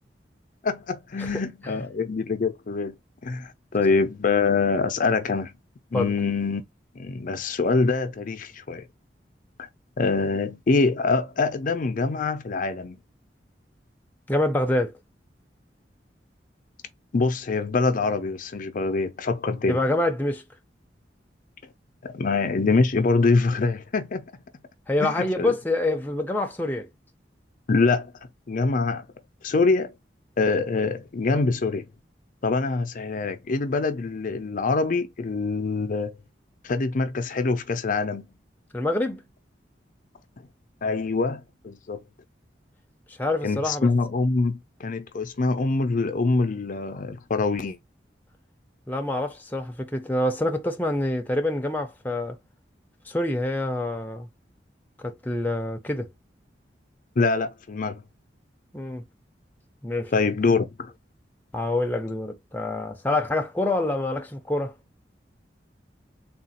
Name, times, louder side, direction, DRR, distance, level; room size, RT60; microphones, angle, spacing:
voice 1, 0.6-3.0 3.2-5.5 5.9-6.6 7.0-8.8 9.6-9.7 10.0-13.0 17.1-19.8 22.0-24.2 25.0-25.5 27.7-28.1 28.5-29.1 29.4-29.9 30.4-31.9 32.4-36.2 36.6-38.3 40.4-40.5 40.8-42.0 43.4-47.8 57.2-58.0 60.1-60.9, left 3 dB, 50° left, 0.5 m, -24 dB
voice 2, 1.2-1.7 5.9-6.1 14.3-14.9 19.7-20.4 24.9-26.9 38.7-39.2 43.2-43.9 48.9-52.4 53.1-54.3 55.0-56.1 58.7-59.0 59.8-60.1 61.5-64.7, left 1 dB, 10° left, 0.6 m, -26 dB
3.7 x 2.4 x 4.2 m
head